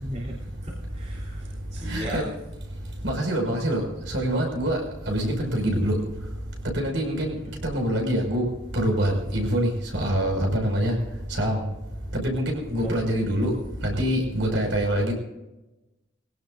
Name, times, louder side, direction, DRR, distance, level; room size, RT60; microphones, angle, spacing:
voice 1, 0.0-0.3 0.6-2.3 7.4-7.5 12.8-12.9, equal, 35° right, -7 dB, 3.2 m, -36 dB
voice 2, 1.9-2.2 3.0-4.8 5.1-6.0 6.7-7.3 7.6-8.5 8.7-11.0 11.3-11.6 12.1-13.5 13.8-15.1, equal, 65° right, 1 dB, 5.6 m, -25 dB
22.0 x 17.0 x 2.6 m, 1.0 s
head